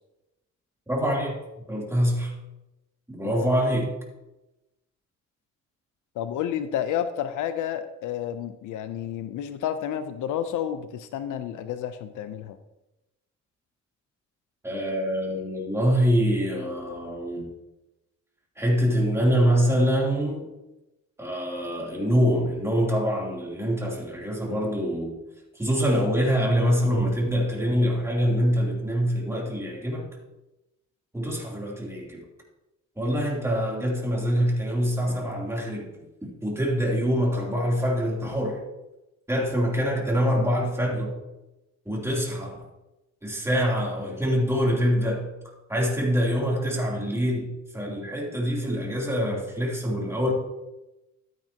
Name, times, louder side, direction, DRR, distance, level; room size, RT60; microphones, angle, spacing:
voice 1, 0.9-1.4 1.7-2.3 3.1-3.9 14.6-17.5 18.6-20.5 21.2-25.2 25.6-30.1 31.1-32.2 33.0-35.9 36.2-38.6 39.3-41.2 41.8-42.6 43.2-45.3 45.7-50.3, equal, 10° right, -2 dB, 3.1 m, -25 dB
voice 2, 6.2-12.6, left 9 dB, 80° left, 11 dB, 0.7 m, -30 dB
12.5 x 9.2 x 2.9 m, 0.97 s
cardioid pair, 90°, 30 cm